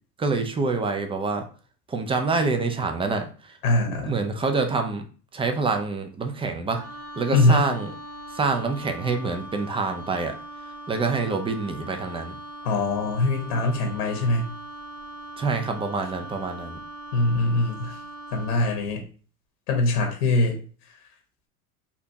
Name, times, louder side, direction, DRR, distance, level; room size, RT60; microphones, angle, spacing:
voice 1, 0.2-1.5 1.9-3.3 3.9-5.0 5.3-6.8 7.2-7.9 8.3-10.3 10.9-12.4 15.4-16.8, right 4 dB, 10° right, 6 dB, 0.5 m, -26 dB
voice 2, 3.6-4.2 7.3-7.6 12.6-14.5 17.1-18.0 18.3-19.0 19.7-20.6, left 2 dB, 70° left, 2 dB, 1.3 m, -22 dB
Wind instrument woodwind instrument, 6.7-18.8, right 1 dB, 55° right, 1.8 m, -40 dB
4.3 x 2.8 x 2.8 m, 0.39 s
hypercardioid pair, 85°, 47 cm